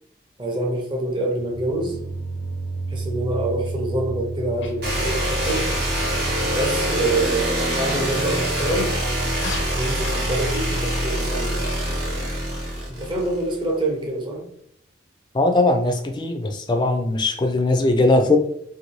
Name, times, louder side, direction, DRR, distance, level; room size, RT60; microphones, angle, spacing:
voice 1, 0.4-2.0 2.9-5.7 6.4-9.0 9.7-12.0 12.9-14.5, right 1 dB, 25° right, -1 dB, 0.6 m, -26 dB
sound 1, 1.4-10.2, right 3 dB, 75° right, 0.5 m, -34 dB
Sneeze, 4.6-4.9 5.4-5.7 8.3-8.4 9.3-10.2, left 4 dB, 85° left, 0.6 m, -34 dB
sound 2, 4.8-13.6, right 1 dB, 60° right, 0.9 m, -24 dB
voice 2, 15.3-18.4, left 2 dB, 25° left, 5 dB, 0.3 m, -19 dB
2.6 x 2.6 x 3.0 m, 0.71 s
head